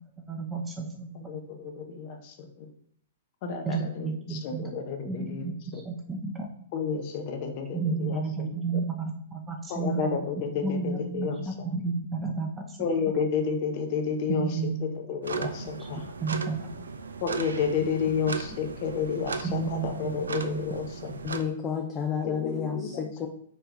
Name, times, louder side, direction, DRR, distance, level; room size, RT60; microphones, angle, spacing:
voice 1, 0.3-1.3 3.6-4.7 5.1-6.5 7.7-10.1 10.6-13.2 14.3-14.9 15.4-16.9 19.4-21.1, right 4 dB, 15° right, 1 dB, 1.0 m, -32 dB
voice 2, 1.3-2.7 3.4-5.5 6.7-8.5 9.7-11.4 12.8-14.5 14.8-16.0 17.2-21.2 22.2-22.9, left 6 dB, 40° left, 5 dB, 1.1 m, -31 dB
sound 1, 15.2-21.4, right 4 dB, 75° right, 0.6 m, -37 dB
voice 3, 21.2-23.3, left 7 dB, 20° left, 2 dB, 0.7 m, -31 dB
4.5 x 4.4 x 5.2 m, 0.63 s
figure-of-eight pair, 110°, 0 cm